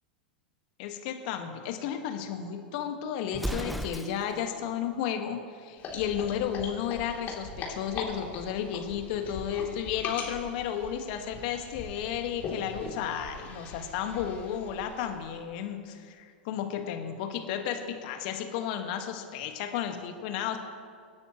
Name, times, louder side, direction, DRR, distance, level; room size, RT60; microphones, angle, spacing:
voice 1, 0.8-20.6, left 9 dB, 55° left, 5 dB, 1.6 m, -33 dB
Explosion, 3.3-4.5, equal, ahead, 0.4 m, -34 dB
sound 1, 5.8-15.3, left 4 dB, 35° left, 3.0 m, -41 dB
25.5 x 9.6 x 3.1 m, 2.1 s
hypercardioid pair, 95°, 5 cm